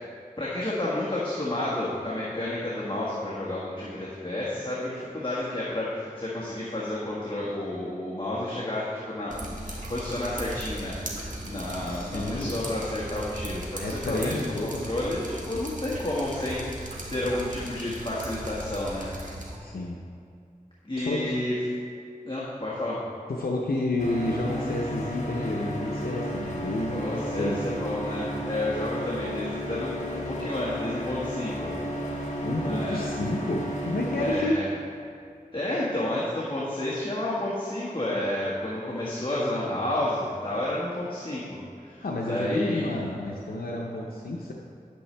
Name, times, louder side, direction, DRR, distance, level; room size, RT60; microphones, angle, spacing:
voice 1, 0.4-19.1 20.8-21.5 22.2-23.0 26.9-32.2 32.6-33.0 34.2-34.7 35.5-42.9, left 1 dB, 35° left, -8 dB, 1.6 m, -31 dB
Drip, 9.3-19.6, right 1 dB, 60° right, 1.6 m, -37 dB
voice 2, 11.8-12.5 13.8-14.8 19.6-20.0 21.0-21.2 23.3-27.7 32.4-34.6 42.0-44.5, left 2 dB, 90° left, -2 dB, 0.7 m, -30 dB
sound 1, 24.0-34.4, equal, 50° left, 1.7 m, -33 dB
10.5 x 8.4 x 3.3 m, 2.4 s
wide cardioid pair, 50°, 15 cm